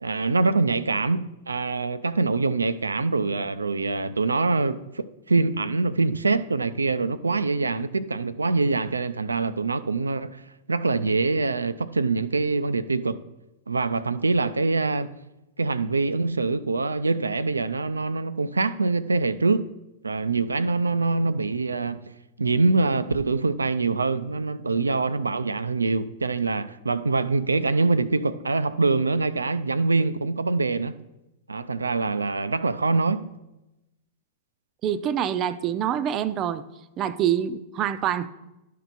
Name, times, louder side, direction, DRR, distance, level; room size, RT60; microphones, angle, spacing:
voice 1, 0.0-10.4 10.7-13.2 13.7-15.1 15.6-19.7 20.0-22.0 22.4-30.9 31.5-33.3, right 3 dB, 90° right, 0.4 m, -24 dB
voice 2, 34.8-36.6 37.0-38.3, right 9 dB, 35° right, 0.5 m, -25 dB
11.5 x 4.6 x 4.0 m
hypercardioid pair, 105°, 0 cm